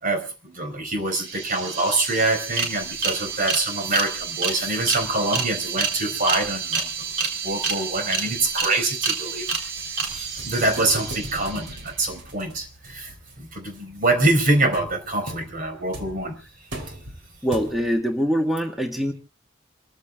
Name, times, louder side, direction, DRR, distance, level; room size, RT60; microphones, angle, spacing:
voice 1, 0.0-9.7 10.1-16.3, right 2 dB, 45° right, 6 dB, 4.4 m, -25 dB
sound 1, 0.9-1.0 1.1-12.0, right 5 dB, 85° right, 4.0 m, -29 dB
sound 2, 9.2-18.1, right 1 dB, 65° right, 3.1 m, -40 dB
voice 2, 17.4-19.1, equal, ahead, 2 dB, 1.5 m, -23 dB
28.5 x 15.0 x 2.3 m, 0.31 s
head